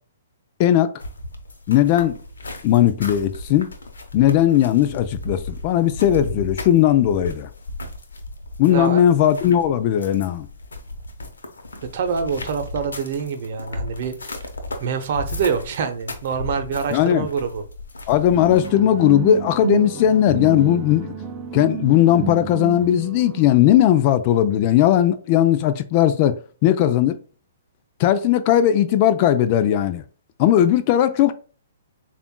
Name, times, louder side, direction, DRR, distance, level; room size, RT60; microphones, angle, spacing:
voice 1, 0.6-1.0 1.7-2.2 2.6-3.7 4.1-7.5 8.6-10.5 16.9-17.3 18.1-21.1 21.5-27.2 28.0-30.0 30.4-31.3, left 11 dB, 40° left, 0.4 m, -17 dB
sound 1, 1.0-18.7, left 2 dB, 80° left, 0.8 m, -35 dB
voice 2, 8.7-9.0 11.8-14.4 14.8-17.6, right 6 dB, 55° right, 0.8 m, -26 dB
sound 2, 18.3-23.6, right 8 dB, 20° right, 0.6 m, -31 dB
6.8 x 2.5 x 2.2 m
hypercardioid pair, 130°, 0 cm